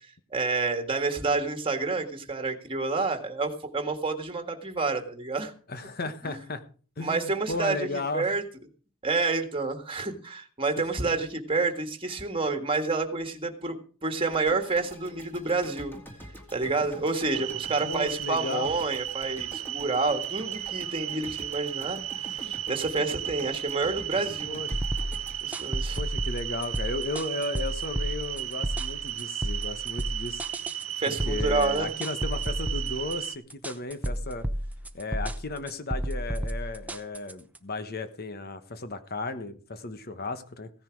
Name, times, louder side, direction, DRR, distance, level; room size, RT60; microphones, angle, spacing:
voice 1, 0.3-5.5 6.2-6.3 7.0-7.9 8.1-8.4 9.0-13.8 14.0-15.9 16.5-24.6 25.4-26.0 31.0-31.9, right 3 dB, 25° right, 6 dB, 1.8 m, -29 dB
voice 2, 5.7-6.6 7.0-8.3 10.8-10.9 17.8-18.7 24.5-24.7 26.0-30.4 31.0-34.5 34.9-40.7, left 2 dB, 45° left, 11 dB, 1.2 m, -35 dB
sound 1, 14.3-26.5, equal, 10° left, 2.5 m, -46 dB
sound 2, 17.3-33.4, right 12 dB, 70° right, 0.8 m, -35 dB
sound 3, 24.7-37.6, equal, 5° right, 0.8 m, -32 dB
16.0 x 10.0 x 4.7 m, 0.40 s
head